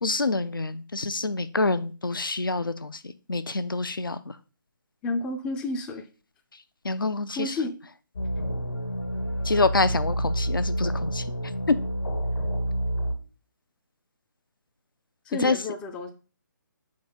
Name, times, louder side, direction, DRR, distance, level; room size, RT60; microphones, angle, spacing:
voice 1, 0.0-3.0 3.3-4.2 6.8-7.5 9.4-11.2 11.7-11.8 15.4-15.6, left 3 dB, 85° left, 0.6 m, -26 dB
voice 2, 5.0-6.1 7.3-7.8 15.3-16.1, left 2 dB, 10° left, 0.4 m, -31 dB
sound 1, 8.2-13.2, right 1 dB, 65° left, 1.5 m, -28 dB
4.7 x 4.0 x 5.1 m
figure-of-eight pair, 145°, 11 cm